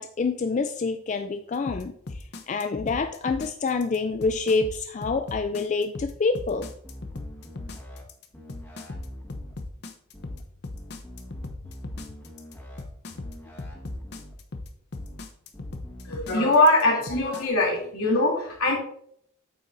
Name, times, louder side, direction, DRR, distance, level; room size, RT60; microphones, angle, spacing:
voice 1, 0.0-6.7, left 4 dB, 35° left, 7 dB, 0.3 m, -27 dB
sound 1, 1.7-17.4, left 2 dB, 50° left, 0.7 m, -38 dB
sound 2, 6.5-8.0 8.3-9.5 10.1-10.4 10.7-12.8 13.1-14.3 14.9-15.2 15.5-16.1, equal, 10° left, 1.3 m, -44 dB
voice 2, 16.0-18.7, left 2 dB, 80° left, -2 dB, 2.9 m, -22 dB
8.9 x 7.1 x 2.6 m, 0.66 s
head